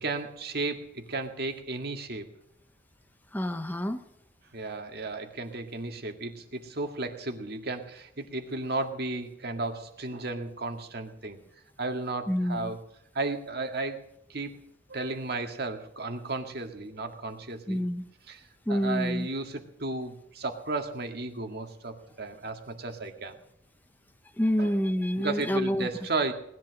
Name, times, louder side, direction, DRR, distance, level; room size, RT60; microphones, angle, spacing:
voice 1, 0.0-2.3 4.5-11.4 11.8-12.8 13.1-14.0 14.3-14.5 14.9-17.8 18.3-18.4 18.7-23.4 24.6-24.7 25.2-26.3, right 3 dB, 55° right, 5 dB, 2.0 m, -34 dB
voice 2, 3.3-4.1 12.3-12.7 17.7-18.1 18.7-19.3 24.4-25.9, equal, 10° left, 10 dB, 0.7 m, -28 dB
19.5 x 11.0 x 6.4 m, 0.77 s
head